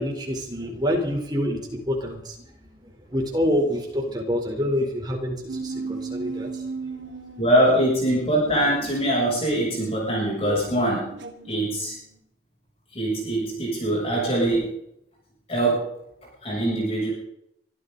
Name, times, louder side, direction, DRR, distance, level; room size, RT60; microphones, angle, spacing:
voice 1, 0.0-2.4 3.1-6.6, equal, 20° right, 1 dB, 3.9 m, -26 dB
sound 1, 5.5-12.2, right 3 dB, 90° right, 2.6 m, -37 dB
voice 2, 7.4-11.1 11.4-12.0 12.9-14.7 15.5-15.9 16.4-17.1, right 1 dB, 35° left, -4 dB, 7.6 m, -23 dB
24.0 x 13.0 x 4.0 m, 0.75 s
head